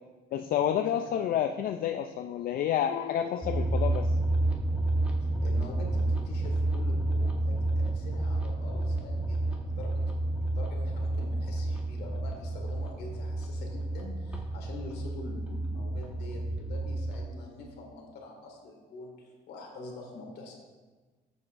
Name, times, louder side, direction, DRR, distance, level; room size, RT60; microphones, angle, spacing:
voice 1, 0.3-4.1, left 10 dB, 60° left, 7 dB, 0.4 m, -29 dB
sound 1, 3.4-17.3, right 2 dB, 5° right, 1.4 m, -30 dB
voice 2, 5.2-20.5, left 3 dB, 75° left, 1 dB, 2.1 m, -45 dB
13.5 x 7.6 x 2.6 m, 1.3 s
cardioid pair, 110°, 17 cm